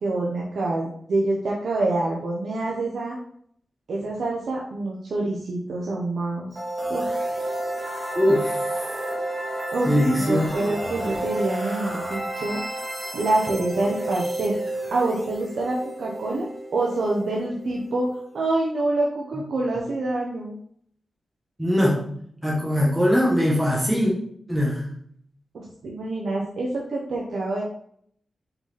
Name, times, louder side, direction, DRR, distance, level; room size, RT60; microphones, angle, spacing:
voice 1, 0.0-3.2 3.9-6.5 6.9-7.1 9.7-12.6 13.1-14.5 14.9-20.6 25.5-27.6, right 2 dB, 75° right, -3 dB, 1.0 m, -26 dB
sound 1, 6.5-18.3, right 1 dB, 30° right, 2.4 m, -31 dB
voice 2, 8.1-8.6 9.8-10.5 21.6-22.0 22.4-24.1 24.5-24.9, equal, 5° right, -4 dB, 1.1 m, -21 dB
5.6 x 4.1 x 4.2 m, 0.66 s
wide cardioid pair, 155°, 0 cm